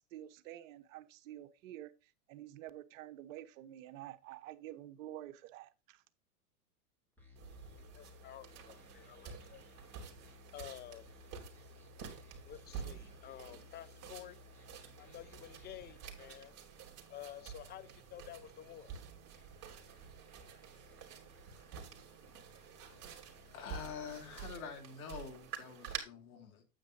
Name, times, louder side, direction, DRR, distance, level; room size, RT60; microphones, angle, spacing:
voice 1, 0.0-6.0, right 13 dB, 60° right, 1.1 m, -49 dB
sound 1, 7.2-24.5, left 2 dB, 5° left, 4.0 m, -60 dB
Walking barefoot on wooden deck, 7.4-26.0, right 7 dB, 35° right, 3.0 m, -50 dB
voice 2, 7.7-9.6 10.5-11.1 12.4-14.4 15.0-16.5 17.1-18.9, left 11 dB, 20° left, 0.8 m, -51 dB
voice 3, 23.5-26.6, left 7 dB, 70° left, 3.0 m, -46 dB
9.1 x 8.7 x 2.6 m
hypercardioid pair, 110°, 44 cm